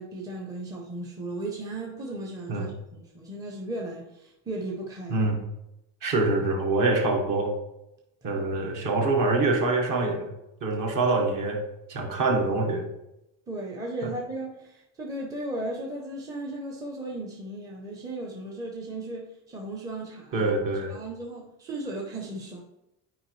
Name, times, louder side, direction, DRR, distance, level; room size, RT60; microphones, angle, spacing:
voice 1, 0.0-5.3 8.2-8.7 13.5-22.6, right 1 dB, 10° right, -2 dB, 0.6 m, -36 dB
voice 2, 6.0-7.5 8.2-10.3 10.6-11.6 11.9-12.8 14.0-14.1 20.3-21.0, right 3 dB, 45° right, 2 dB, 1.4 m, -25 dB
9.5 x 4.7 x 3.1 m, 0.89 s
cardioid pair, 180°, 46 cm